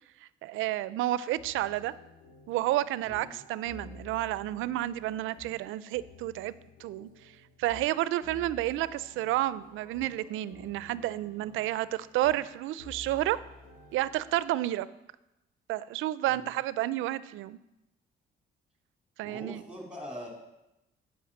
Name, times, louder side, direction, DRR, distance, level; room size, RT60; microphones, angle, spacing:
voice 1, 0.4-1.9 2.5-6.5 6.8-7.1 7.6-13.4 13.9-14.9 15.7-17.6 19.2-19.6, right 15 dB, 90° right, 17 dB, 0.4 m, -30 dB
sound 1, 1.4-14.5, left 3 dB, 75° left, 3.1 m, -52 dB
voice 2, 3.0-3.4 16.2-16.6 19.2-20.3, equal, 5° right, -1 dB, 3.4 m, -43 dB
8.6 x 5.5 x 7.5 m, 0.93 s
cardioid pair, 90°, 20 cm